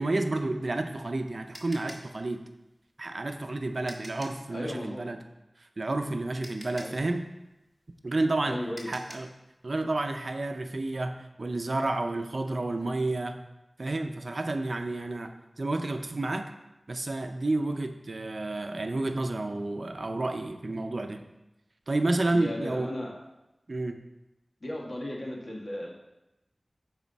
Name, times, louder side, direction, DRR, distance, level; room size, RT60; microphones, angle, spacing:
voice 1, 0.0-2.4 3.0-5.2 5.8-7.2 8.0-8.6 8.9-9.3 9.6-13.4 13.8-16.5 16.9-21.2 21.9-22.9 23.7-24.0, right 2 dB, 70° right, 6 dB, 0.6 m, -30 dB
sound 1, 0.6-4.5 5.9-6.0 6.4-9.4, equal, 10° right, 1.6 m, -47 dB
voice 2, 4.5-5.0 6.8-6.9 8.4-8.9 22.3-23.1 24.6-25.9, left 1 dB, 55° left, -2 dB, 1.8 m, -35 dB
9.4 x 4.9 x 4.1 m, 0.97 s
wide cardioid pair, 50°, 0 cm